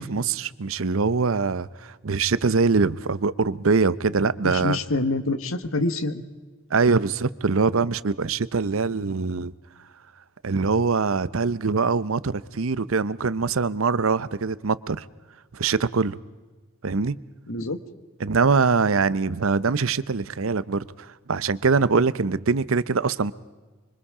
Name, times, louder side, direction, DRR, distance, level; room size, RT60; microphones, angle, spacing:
voice 1, 0.0-4.8 6.7-9.5 10.4-15.0 15.5-16.2 16.8-17.2 18.2-23.3, right 4 dB, 80° right, 0.7 m, -23 dB
voice 2, 4.4-6.2 17.5-17.8, left 2 dB, 85° left, 1.4 m, -26 dB
25.5 x 24.5 x 4.9 m
head